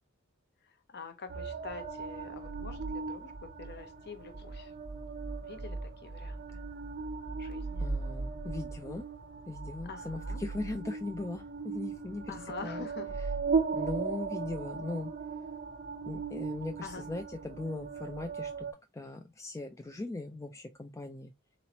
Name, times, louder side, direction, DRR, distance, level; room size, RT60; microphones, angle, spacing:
voice 1, 0.9-3.3 3.6-4.7 5.5-5.8 6.0-6.4 7.4-7.8 9.8-10.4 12.3-13.1 16.8-17.0, left 4 dB, 50° left, 0.7 m, -45 dB
sound 1, 1.3-18.7, right 4 dB, 40° right, 0.6 m, -37 dB
voice 2, 7.8-9.0 9.5-12.9 13.1-13.3 13.7-15.1 16.1-18.7 18.9-21.3, left 2 dB, 15° left, 0.3 m, -39 dB
3.9 x 3.0 x 2.8 m
head